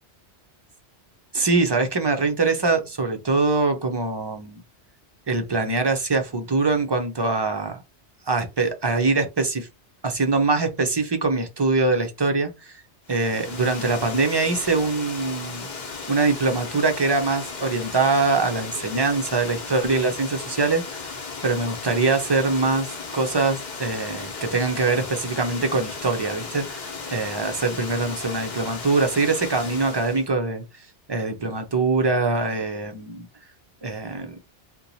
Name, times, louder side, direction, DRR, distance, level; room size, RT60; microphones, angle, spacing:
voice 1, 1.3-4.6 5.3-7.8 8.3-9.7 10.0-12.8 13.1-15.7 16.1-21.0 21.4-30.6 31.1-33.3 33.8-34.4, right 3 dB, 40° right, 0.4 m, -23 dB
Water, 13.1-30.3, left 4 dB, 45° left, 0.8 m, -36 dB
2.9 x 2.2 x 4.0 m
omnidirectional pair, 1.2 m